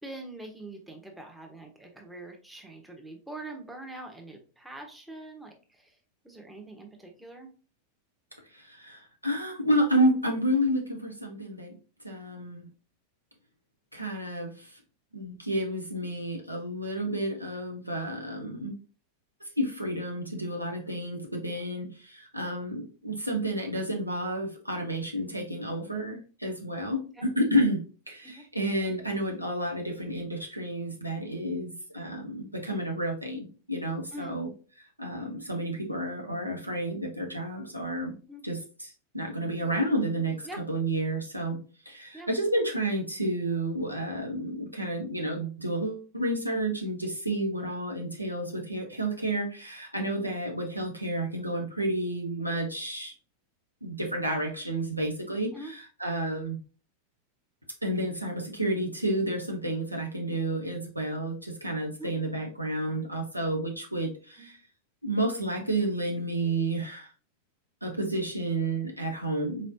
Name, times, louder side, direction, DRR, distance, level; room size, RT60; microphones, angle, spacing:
voice 1, 0.0-6.0 6.2-7.5 27.0-27.2 28.2-28.5 34.1-34.4 38.3-38.4 40.4-40.7 42.1-42.3 55.5-55.7 62.0-62.1 64.4-64.5, right 2 dB, 5° right, 2 dB, 0.9 m, -44 dB
voice 2, 8.5-11.7 12.0-12.6 13.9-14.7 15.1-18.7 19.6-27.8 28.1-34.5 35.0-38.1 38.4-40.4 40.7-41.6 41.9-53.1 53.8-56.6 57.8-64.6 65.0-67.1 67.8-69.7, right 1 dB, 85° right, 1 dB, 0.8 m, -30 dB
4.0 x 3.2 x 2.7 m, 0.36 s
figure-of-eight pair, 90°, 0 cm